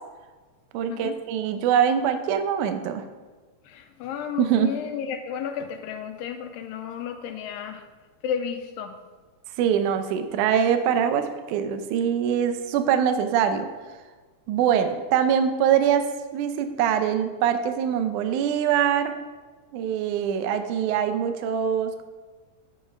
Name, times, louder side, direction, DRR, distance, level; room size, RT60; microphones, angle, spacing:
voice 1, 0.7-3.0 4.4-4.7 9.6-13.7 14.5-16.1 16.3-19.2 19.7-22.0, right 8 dB, 75° right, 8 dB, 1.9 m, -23 dB
voice 2, 3.7-7.8 8.2-8.9, left 7 dB, 90° left, 6 dB, 2.4 m, -32 dB
10.5 x 5.5 x 5.0 m, 1.3 s
omnidirectional pair, 4.0 m